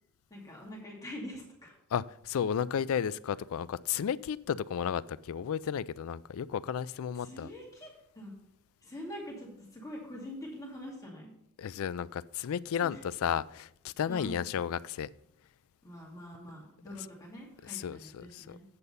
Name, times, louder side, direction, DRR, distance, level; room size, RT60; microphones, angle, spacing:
voice 1, 0.3-1.7 7.2-7.9 8.1-8.3 8.8-11.3 12.8-13.0 14.1-14.4 15.8-18.6, equal, 15° left, 2.4 m, -44 dB
voice 2, 1.9-7.5 11.6-15.1 17.6-18.6, left 8 dB, 65° left, 0.3 m, -33 dB
8.2 x 6.8 x 5.4 m
head